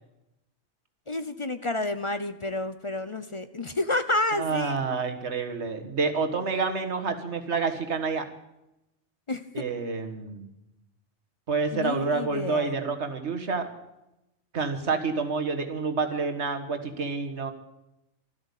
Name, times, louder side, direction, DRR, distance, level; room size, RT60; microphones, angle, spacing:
voice 1, 1.1-4.8 9.3-9.6 11.7-12.7, left 2 dB, 30° left, 10 dB, 0.6 m, -30 dB
voice 2, 4.3-8.2 9.5-10.5 11.5-13.7 14.5-17.5, right 4 dB, 65° right, 6 dB, 1.8 m, -28 dB
13.0 x 12.5 x 8.4 m, 0.89 s
omnidirectional pair, 1.3 m